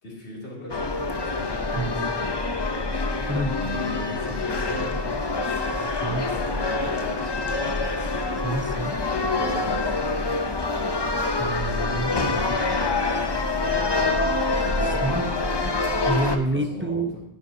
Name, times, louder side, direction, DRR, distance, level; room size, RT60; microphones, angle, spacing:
voice 1, 0.0-8.1 9.1-10.5 11.8-14.2 14.5-15.6 16.5-17.0, left 1 dB, 80° left, -4 dB, 3.1 m, -39 dB
sound 1, 0.7-16.4, left 3 dB, 30° left, 0.6 m, -26 dB
voice 2, 1.8-2.1 3.3-3.6 5.8-6.2 8.4-9.0 11.4-12.4 15.0-15.2 15.6-15.7 16.0-17.2, right 2 dB, 15° right, 7 dB, 0.4 m, -28 dB
14.5 x 10.0 x 2.8 m, 0.76 s
omnidirectional pair, 1.1 m